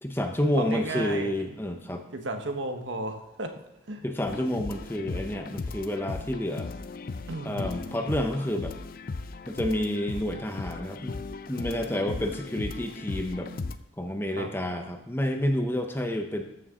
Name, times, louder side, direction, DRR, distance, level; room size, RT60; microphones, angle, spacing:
voice 1, 0.0-2.0 4.0-6.7 7.4-8.7 9.5-11.2 11.5-13.5 14.0-16.4, left 1 dB, 10° left, 5 dB, 0.7 m, -29 dB
voice 2, 0.5-1.3 2.1-3.5 3.9-4.1 7.3-7.7 14.4-14.5, right 2 dB, 75° right, 5 dB, 1.2 m, -33 dB
sound 1, 4.3-13.7, left 3 dB, 45° left, 0.5 m, -37 dB
13.5 x 6.8 x 3.7 m, 0.97 s
head